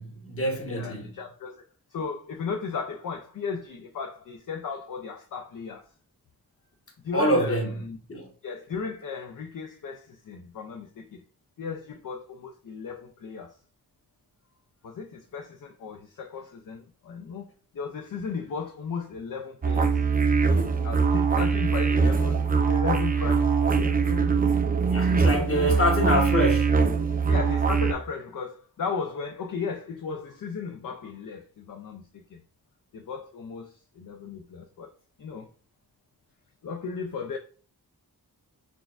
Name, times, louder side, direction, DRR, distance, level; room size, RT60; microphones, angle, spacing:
voice 1, 0.0-1.1 7.1-7.8 8.1-8.3 24.9-26.7, equal, 35° left, 1.1 m, -25 dB
voice 2, 0.7-1.6 1.9-5.9 7.0-8.0 8.4-11.2 11.6-13.6 14.8-17.5 17.7-20.0 20.8-24.3 25.3-25.7 27.3-32.4 32.9-34.9 35.2-35.5 36.6-37.4, left 5 dB, 55° left, 0.5 m, -35 dB
sound 1, 19.6-27.9, right 5 dB, 25° right, 0.3 m, -22 dB
6.0 x 2.3 x 2.4 m
cardioid pair, 55°, 39 cm